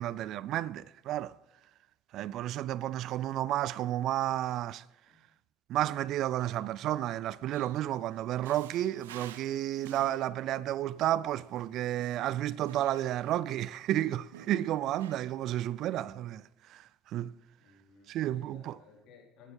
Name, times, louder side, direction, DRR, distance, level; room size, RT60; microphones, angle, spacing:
voice 1, 0.0-1.3 2.1-4.8 5.7-17.3 18.1-18.8, right 13 dB, 60° right, 0.4 m, -32 dB
Male speech man speaking, 6.1-13.7 14.1-15.4, right 11 dB, 85° right, 0.7 m, -53 dB
voice 2, 17.6-19.5, left 5 dB, 65° left, 4.3 m, -58 dB
14.5 x 10.5 x 5.7 m
hypercardioid pair, 70°, 0 cm